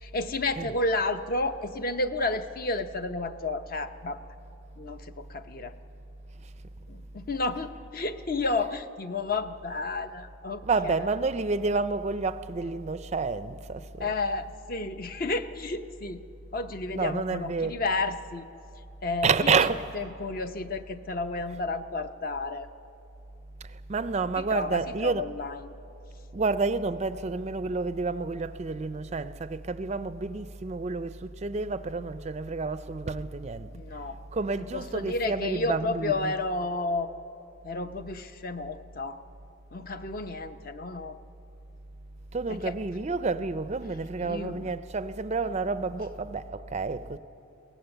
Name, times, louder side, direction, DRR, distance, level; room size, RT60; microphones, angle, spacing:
voice 1, 0.0-4.2 4.8-5.8 6.9-11.0 14.0-16.2 16.5-18.5 19.0-19.5 19.9-22.7 24.5-25.7 33.7-34.2 34.7-37.1 37.6-39.2 39.7-41.2 42.5-42.8 44.2-44.8, left 3 dB, 45° left, 0.7 m, -31 dB
voice 2, 10.6-14.1 16.9-17.8 19.2-19.9 23.6-25.3 26.3-33.7 34.3-36.3 42.3-47.2, right 4 dB, 30° right, 0.4 m, -29 dB
21.5 x 18.0 x 7.9 m
head